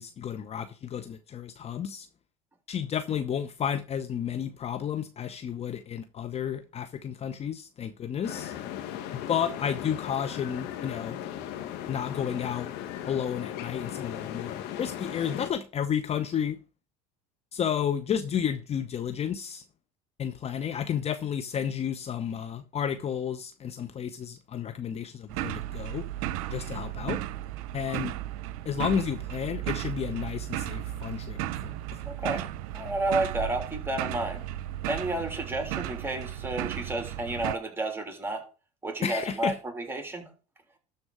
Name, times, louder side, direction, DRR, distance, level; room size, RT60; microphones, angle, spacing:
voice 1, 0.0-2.1 2.7-8.5 9.1-11.2 11.9-12.7 13.1-16.6 17.5-19.6 20.2-26.0 26.5-27.2 27.7-28.1 28.6-31.7 39.0-39.6, left 8 dB, 35° left, 0.8 m, -32 dB
sound 1, 8.2-15.5, left 11 dB, 65° left, 1.7 m, -37 dB
sound 2, 25.3-37.6, right 13 dB, 70° right, 0.7 m, -35 dB
voice 2, 32.0-34.4 34.9-38.4 38.8-40.3, right 2 dB, 10° right, 3.3 m, -31 dB
12.5 x 4.3 x 6.4 m
hypercardioid pair, 90°, 19 cm